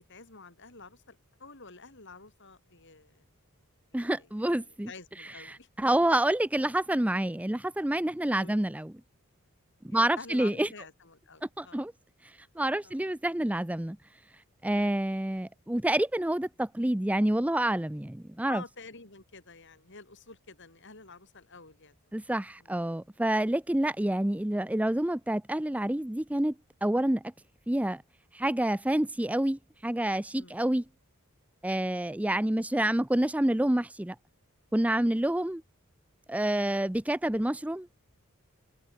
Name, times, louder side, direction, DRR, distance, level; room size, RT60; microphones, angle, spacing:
voice 1, 0.0-3.2 3.9-4.3 4.6-5.7 8.3-8.6 9.9-11.8 12.8-13.0 14.7-15.0 18.5-21.9 22.6-22.7 30.3-30.6, left 4 dB, 55° left, 4.5 m, -49 dB
voice 2, 3.9-4.9 5.2-8.9 9.8-10.7 11.6-11.9 12.6-14.0 14.6-18.6 22.1-26.5 26.8-27.2 27.7-28.0 28.3-30.8 31.6-34.2 34.7-35.6 36.3-37.9, right 1 dB, 5° right, 0.5 m, -28 dB
head